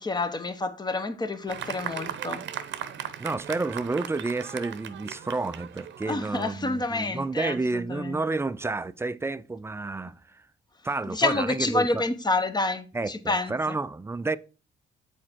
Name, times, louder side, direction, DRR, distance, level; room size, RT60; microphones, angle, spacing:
voice 1, 0.0-2.4 6.1-8.2 11.1-13.8, left 2 dB, 20° left, 0.9 m, -28 dB
Fireworks, 1.5-7.2, right 9 dB, 65° right, 0.7 m, -38 dB
voice 2, 3.2-10.4 10.8-12.0 12.9-14.4, right 3 dB, 15° right, 0.3 m, -30 dB
7.5 x 4.4 x 4.5 m
cardioid pair, 90°, 20 cm